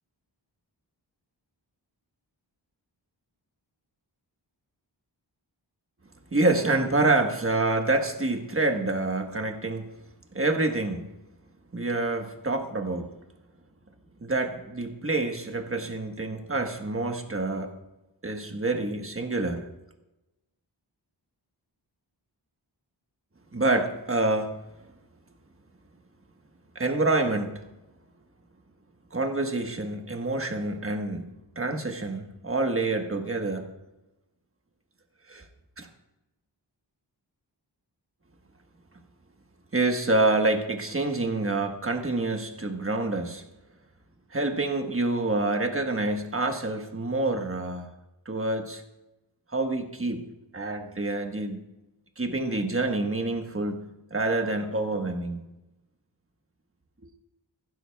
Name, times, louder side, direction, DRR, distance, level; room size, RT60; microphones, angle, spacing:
voice 1, 6.3-9.9 10.3-11.1 11.7-13.1 14.2-17.8 18.2-19.6 23.5-24.5 26.7-27.6 29.1-33.7 35.3-35.4 35.8-35.9 39.7-43.4 44.3-47.9 48.2-48.8 49.5-50.2 50.5-51.6 52.2-55.4, right 2 dB, 30° right, 4 dB, 1.3 m, -27 dB
15.5 x 11.5 x 2.3 m, 0.97 s
wide cardioid pair, 75°, 45 cm